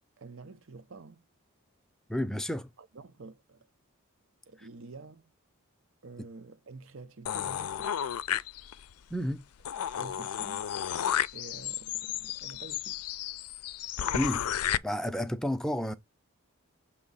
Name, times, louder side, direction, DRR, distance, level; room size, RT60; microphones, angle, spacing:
voice 1, 0.2-1.3 2.8-3.7 4.5-5.2 6.0-7.9 9.9-10.7 11.3-13.1, right 3 dB, 60° right, 0.7 m, -48 dB
voice 2, 2.1-2.7 9.1-9.5 14.1-14.4 14.8-15.9, equal, 5° left, 0.5 m, -31 dB
sound 1, 7.3-8.9 9.3-9.4 9.6-14.8, left 10 dB, 90° left, 0.4 m, -33 dB
7.2 x 3.0 x 5.4 m
head